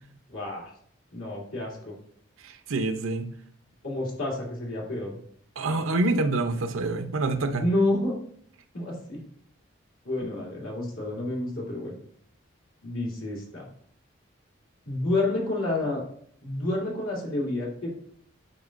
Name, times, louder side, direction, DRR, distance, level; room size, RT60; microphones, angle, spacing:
voice 1, 0.3-0.7 1.1-1.9 3.8-5.2 7.6-8.2 8.7-9.2 10.0-11.9 12.8-13.7 14.9-16.0 16.4-17.9, left 2 dB, 85° left, -3 dB, 2.6 m, -29 dB
voice 2, 2.7-3.3 5.6-7.6, right 2 dB, 85° right, 8 dB, 0.7 m, -26 dB
9.3 x 5.1 x 2.5 m, 0.63 s
head